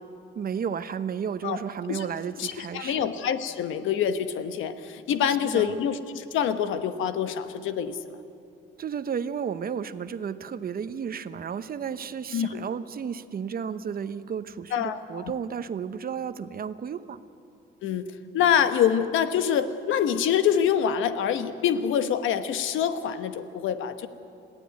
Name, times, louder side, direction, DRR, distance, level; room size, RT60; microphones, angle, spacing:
voice 1, 0.3-3.1 5.4-5.9 8.8-17.2, right 7 dB, 50° right, 12 dB, 0.9 m, -33 dB
voice 2, 2.4-8.2 12.3-12.6 14.7-15.3 17.8-18.1 18.3-24.1, left 8 dB, 85° left, 10 dB, 1.1 m, -26 dB
21.5 x 15.5 x 9.4 m, 2.7 s
cardioid pair, 90°, 20 cm